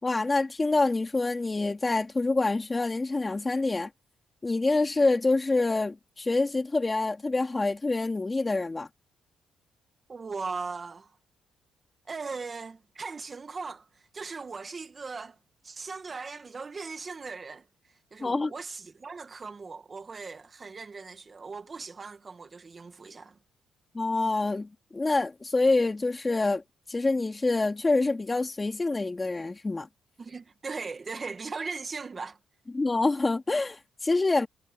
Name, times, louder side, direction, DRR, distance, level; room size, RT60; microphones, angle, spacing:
voice 1, 0.0-3.9 4.4-8.9 18.2-18.5 23.9-26.6 26.9-29.9 32.7-34.5, left 3 dB, 20° left, 3.1 m, -26 dB
voice 2, 10.1-11.1 12.1-15.4 15.6-23.4 30.2-32.4, right 4 dB, 35° right, 2.0 m, -39 dB
cardioid pair, 95°, 0 cm